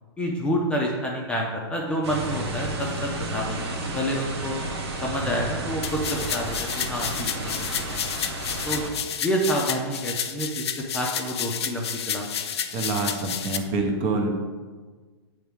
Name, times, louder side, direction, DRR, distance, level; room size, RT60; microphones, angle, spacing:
voice 1, 0.2-4.6 5.0-8.1 8.4-8.8 9.2-12.2, equal, 10° left, -2 dB, 0.6 m, -28 dB
sound 1, 2.0-8.9, right 2 dB, 85° right, 1.6 m, -32 dB
sound 2, 5.8-13.6, left 8 dB, 75° left, 0.6 m, -31 dB
voice 2, 12.7-14.3, right 3 dB, 35° right, 3 dB, 1.0 m, -26 dB
8.9 x 3.5 x 3.5 m, 1.4 s
hypercardioid pair, 145°, 14 cm